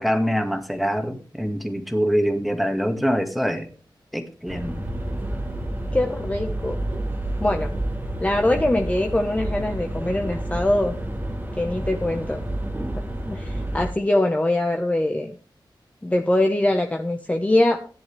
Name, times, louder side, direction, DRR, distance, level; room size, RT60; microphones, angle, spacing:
voice 1, 0.0-3.7 4.1-4.8, equal, ahead, 5 dB, 2.1 m, -24 dB
sound 1, 4.5-13.9, right 1 dB, 25° right, 2.4 m, -29 dB
voice 2, 5.9-6.8 7.4-7.7 8.2-10.9 11.6-12.4 13.2-15.3 16.0-17.8, left 1 dB, 15° left, 3 dB, 1.2 m, -22 dB
15.5 x 10.5 x 3.4 m, 0.38 s
wide cardioid pair, 125°, 8 cm